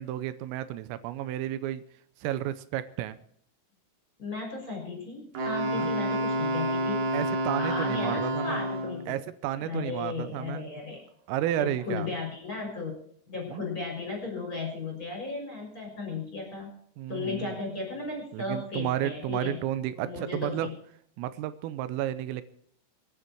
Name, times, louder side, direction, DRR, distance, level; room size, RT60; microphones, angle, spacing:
voice 1, 0.0-1.8 2.2-3.2 5.7-5.9 7.1-8.6 9.1-10.7 11.3-12.1 13.5-13.7 17.0-17.6 18.3-20.7 21.2-22.4, right 13 dB, 85° right, 13 dB, 3.4 m, -32 dB
voice 2, 4.2-7.1 7.6-9.2 9.6-11.0 11.6-13.0 13.3-16.7 17.1-19.6 19.9-20.7, left 4 dB, 15° left, 0 dB, 6.1 m, -35 dB
Wind instrument woodwind instrument, 5.3-9.1, equal, 50° right, 3.9 m, -29 dB
24.0 x 9.8 x 4.5 m, 0.65 s
omnidirectional pair, 5.9 m